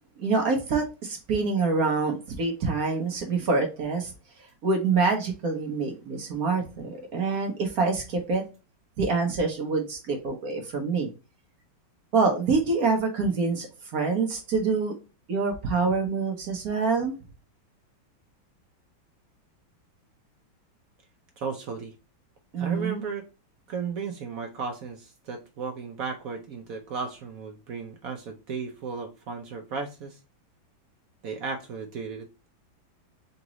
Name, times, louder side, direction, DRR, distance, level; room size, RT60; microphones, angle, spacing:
voice 1, 0.2-4.1 4.6-8.4 9.0-11.1 12.1-14.9 15.3-17.1 22.5-23.0, right 4 dB, 55° right, 4 dB, 1.1 m, -26 dB
voice 2, 21.4-21.9 22.6-23.3 23.7-30.2 31.2-32.3, right 5 dB, 75° right, 3 dB, 0.8 m, -35 dB
4.0 x 3.6 x 2.9 m, 0.31 s
omnidirectional pair, 2.1 m